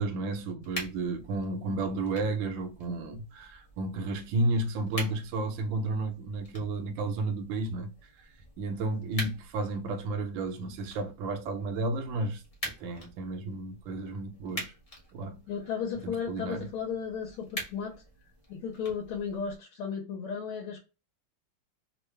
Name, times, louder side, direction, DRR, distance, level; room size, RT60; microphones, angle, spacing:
voice 1, 0.0-7.9 8.2-14.7 15.1-15.4 16.0-16.7, right 2 dB, 70° right, 1.3 m, -32 dB
sound 1, 0.6-19.6, left 1 dB, 45° left, 0.4 m, -45 dB
voice 2, 15.5-18.0 18.5-20.8, left 6 dB, 80° left, 1.5 m, -34 dB
3.7 x 2.1 x 3.2 m
omnidirectional pair, 2.4 m